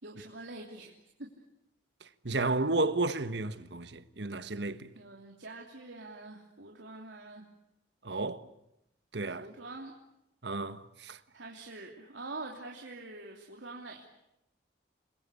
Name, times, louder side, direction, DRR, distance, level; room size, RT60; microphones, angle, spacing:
voice 1, 0.0-1.3 4.9-7.4 9.3-9.9 11.3-14.0, right 2 dB, 85° right, 3.2 m, -45 dB
voice 2, 2.2-4.9 8.0-8.4 9.1-9.5 10.4-11.2, right 2 dB, 70° right, 1.4 m, -32 dB
29.0 x 22.5 x 8.4 m
head